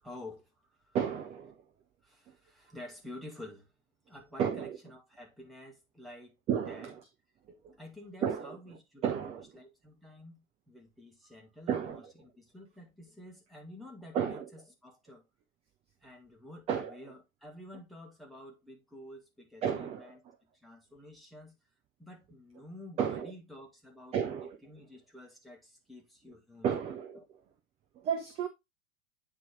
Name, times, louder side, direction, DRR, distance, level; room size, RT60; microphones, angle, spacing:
voice 1, 0.0-1.0 2.0-3.7 4.1-6.4 6.7-6.9 7.8-15.2 16.0-20.2 20.6-21.5 22.0-24.2 24.6-26.8 27.1-27.2, left 1 dB, ahead, 1.7 m, -50 dB
voice 2, 0.9-1.5 4.4-4.8 6.5-7.0 8.2-8.6 9.0-9.4 11.7-12.0 14.1-14.5 16.7-17.0 19.6-20.2 23.0-23.3 24.1-24.6 26.6-27.2 28.0-28.5, right 8 dB, 15° right, 0.5 m, -32 dB
8.5 x 3.4 x 3.6 m
figure-of-eight pair, 95°, 42 cm